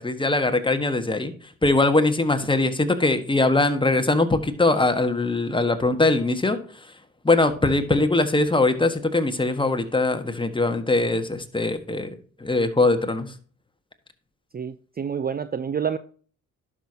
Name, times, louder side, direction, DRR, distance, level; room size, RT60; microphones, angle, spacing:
voice 1, 0.0-1.3 1.6-6.9 7.2-12.1 12.4-13.3, left 2 dB, 15° left, 1.5 m, -21 dB
voice 2, 14.5-16.0, right 7 dB, 25° right, 0.6 m, -28 dB
11.0 x 6.3 x 2.8 m
supercardioid pair, 65°, 34 cm